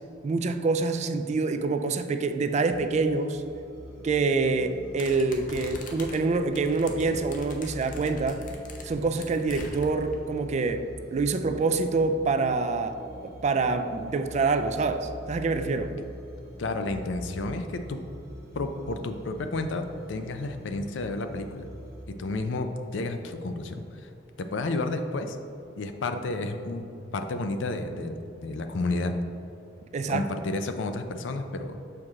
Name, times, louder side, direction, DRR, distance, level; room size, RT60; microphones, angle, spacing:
voice 1, 0.2-3.4 4.0-8.4 8.8-10.8 11.1-13.0 13.2-15.9 29.9-30.3, right 3 dB, 40° right, 8 dB, 0.3 m, -26 dB
sound 1, 2.7-22.1, equal, 55° right, 1.1 m, -44 dB
sound 2, 5.0-10.1, left 2 dB, 45° left, 0.7 m, -43 dB
voice 2, 16.6-18.0 18.5-21.7 22.1-24.1 24.4-25.4 25.8-26.9 27.1-29.1 30.1-31.8, left 2 dB, 90° left, 7 dB, 0.5 m, -31 dB
6.3 x 4.6 x 3.6 m, 2.7 s
head